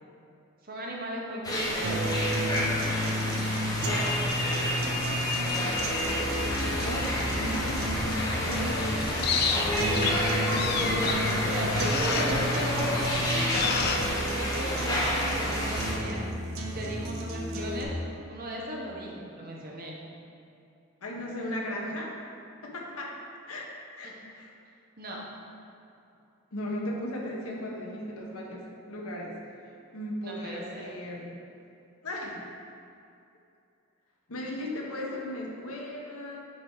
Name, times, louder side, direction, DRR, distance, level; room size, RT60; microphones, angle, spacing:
voice 1, 0.6-2.1 10.6-13.1 13.6-16.3 16.6-17.9 18.3-20.0 24.0-24.1 25.0-25.2 30.2-31.0, right 1 dB, 40° right, -3 dB, 1.0 m, -37 dB
sound 1, 1.4-15.9, left 1 dB, 15° left, 0.8 m, -30 dB
sound 2, 1.8-17.8, equal, 70° right, 0.8 m, -32 dB
sound 3, 6.3-14.1, left 5 dB, 45° left, 0.4 m, -32 dB
voice 2, 6.8-9.1 9.7-10.4 10.7-11.8 12.2-12.4 21.0-22.1 22.6-23.2 23.5-23.7 24.0-24.5 26.5-29.4 29.9-31.3 32.0-32.4 34.3-36.4, left 1 dB, 80° left, -1 dB, 1.1 m, -37 dB
8.7 x 3.6 x 4.7 m, 2.6 s
head